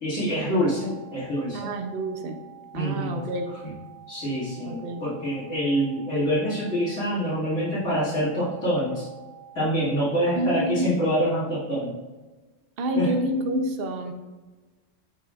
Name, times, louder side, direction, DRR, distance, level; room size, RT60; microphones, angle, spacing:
voice 1, 0.0-1.7 2.7-3.2 4.1-9.1 9.5-11.9 12.9-13.1, equal, 85° left, -13 dB, 2.6 m, -26 dB
sound 1, 0.6-10.6, right 10 dB, 55° left, 1.9 m, -48 dB
voice 2, 1.5-2.4 2.7-3.5 4.7-5.0 10.4-11.0 12.8-14.1, right 1 dB, 55° right, 5 dB, 0.9 m, -28 dB
8.6 x 5.3 x 2.4 m, 1.2 s
omnidirectional pair, 1.3 m